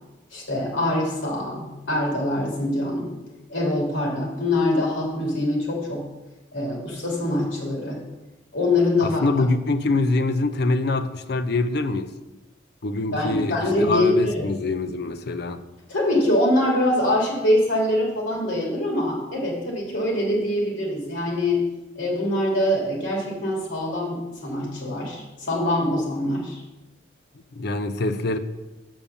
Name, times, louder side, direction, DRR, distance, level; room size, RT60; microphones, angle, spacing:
voice 1, 0.3-3.1 3.5-6.1 6.5-8.0 8.5-9.2 13.1-14.5 15.9-21.6 22.0-26.6, left 1 dB, 85° left, 3.0 m, -24 dB
voice 2, 9.0-12.1 12.8-15.6 27.5-28.4, left 2 dB, 55° left, 0.6 m, -24 dB
7.0 x 5.4 x 7.0 m
head